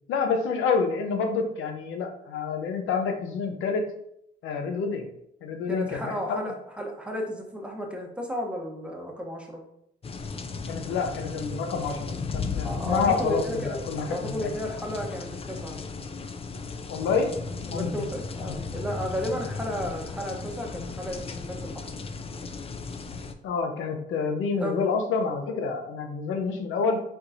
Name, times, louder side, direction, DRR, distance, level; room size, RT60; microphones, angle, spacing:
voice 1, 0.1-3.9 4.4-5.1 5.4-6.4 10.7-14.5 16.9-17.4 17.7-17.9 23.4-27.0, left 5 dB, 85° left, 5 dB, 0.7 m, -28 dB
voice 2, 5.7-9.6 12.6-13.8 14.1-15.8 17.7-21.9 24.6-24.8, equal, 5° right, 0 dB, 1.0 m, -33 dB
sound 1, 10.0-23.3, left 4 dB, 30° left, 0.4 m, -36 dB
4.5 x 3.8 x 2.7 m, 0.75 s
cardioid pair, 90°, 20 cm